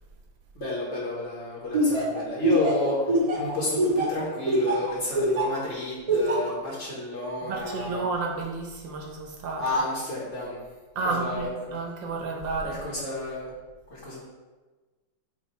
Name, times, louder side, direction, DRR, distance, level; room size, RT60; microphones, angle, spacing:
voice 1, 0.6-8.0 9.5-10.6 11.0-11.8 12.6-13.5 13.9-14.2, left 1 dB, 45° left, -7 dB, 1.6 m, -31 dB
Laughter, 1.7-5.6 6.1-6.5, right 1 dB, 35° right, 0.6 m, -24 dB
voice 2, 7.4-9.6 11.0-12.8, right 3 dB, 80° right, 0 dB, 1.7 m, -31 dB
8.3 x 3.0 x 4.4 m, 1.3 s
omnidirectional pair, 2.0 m